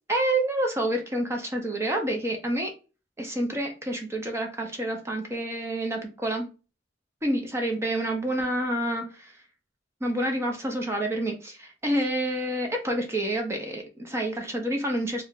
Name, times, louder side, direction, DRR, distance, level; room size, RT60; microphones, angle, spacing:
voice 1, 0.1-2.7 3.2-6.5 7.2-9.3 10.0-15.2, right 1 dB, 15° right, 0.5 m, -28 dB
2.5 x 2.2 x 3.8 m
head